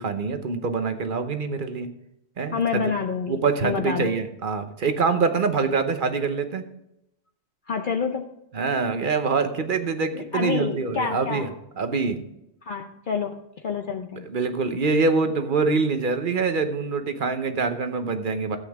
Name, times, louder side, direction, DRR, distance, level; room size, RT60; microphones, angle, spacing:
voice 1, 0.0-1.9 2.4-2.8 3.3-6.6 8.5-11.5 11.8-12.2 14.3-18.6, right 4 dB, 50° right, 8 dB, 1.0 m, -25 dB
voice 2, 2.5-4.1 7.7-8.2 10.1-11.5 12.6-13.4 13.6-14.3, left 5 dB, 55° left, 5 dB, 0.8 m, -28 dB
13.5 x 8.3 x 3.5 m, 0.83 s
omnidirectional pair, 1.1 m